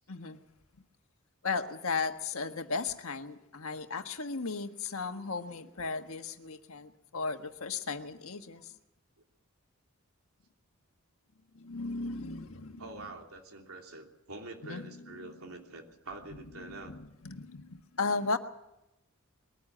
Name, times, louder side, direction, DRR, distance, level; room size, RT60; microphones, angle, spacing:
voice 1, 0.1-0.4 1.4-8.7 11.5-12.8 14.6-15.4 16.6-18.4, left 4 dB, 75° left, 6 dB, 1.5 m, -36 dB
voice 2, 12.8-17.0, right 2 dB, 85° right, 2 dB, 3.0 m, -46 dB
21.5 x 14.5 x 8.7 m, 0.89 s
head